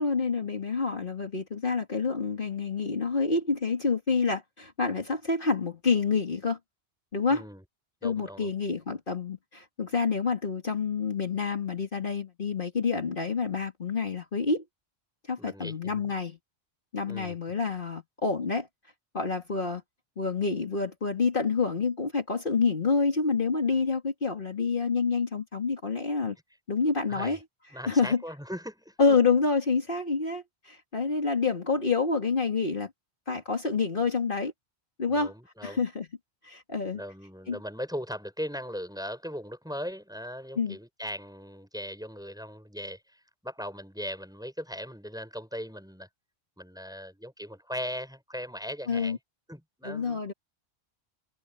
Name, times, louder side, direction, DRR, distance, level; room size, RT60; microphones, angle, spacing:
voice 1, 0.0-6.6 7.1-7.4 8.0-14.6 15.3-16.4 16.9-18.7 19.1-19.8 20.2-26.4 26.7-27.4 27.9-28.2 29.0-32.9 33.3-34.5 35.0-35.3 35.6-36.1 36.4-37.0 37.5-37.6 40.6-40.8 48.9-49.2 49.8-50.3, left 4 dB, 50° left, 2.3 m, -28 dB
voice 2, 7.3-7.6 8.0-8.5 15.4-16.0 17.1-17.4 27.1-27.4 27.7-29.2 35.1-35.8 36.9-46.1 46.6-49.2 49.5-50.2, equal, 5° right, 5.4 m, -39 dB
omnidirectional pair, 1.1 m